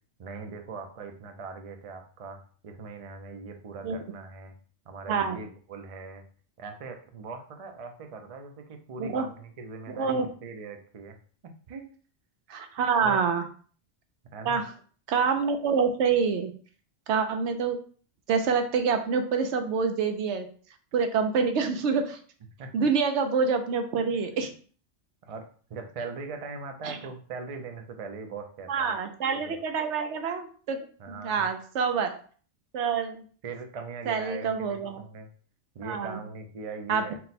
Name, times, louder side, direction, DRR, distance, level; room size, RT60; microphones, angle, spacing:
voice 1, 0.2-2.4 2.6-4.5 4.9-6.2 6.6-11.2 11.4-11.9 13.0-13.2 14.3-14.6 22.6-22.7 25.3-25.4 25.7-28.9 29.4-29.5 31.0-31.5 33.4-35.3 35.7-37.2, right 4 dB, 45° right, 4 dB, 0.5 m, -40 dB
voice 2, 9.9-10.3 12.5-13.4 14.5-14.7 15.1-16.5 17.1-17.8 18.3-20.5 20.9-22.2 22.7-24.5 26.8-27.0 28.7-30.9 31.2-32.2 32.7-33.2 34.1-35.0 35.8-36.2 36.9-37.2, right 5 dB, 75° right, 6 dB, 0.9 m, -26 dB
4.2 x 2.1 x 4.1 m, 0.43 s
omnidirectional pair, 1.2 m